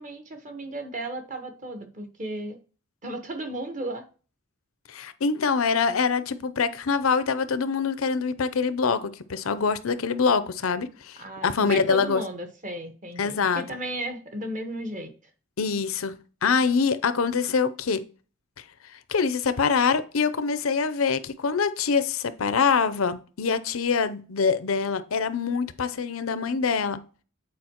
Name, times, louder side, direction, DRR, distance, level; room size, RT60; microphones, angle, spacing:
voice 1, 0.0-2.6 3.0-4.0 11.2-15.1, right 1 dB, 40° right, 1.3 m, -34 dB
voice 2, 4.9-12.2 13.2-13.6 15.6-16.1 16.4-18.0 19.1-27.0, left 5 dB, 85° left, 0.6 m, -24 dB
8.4 x 4.7 x 3.0 m
head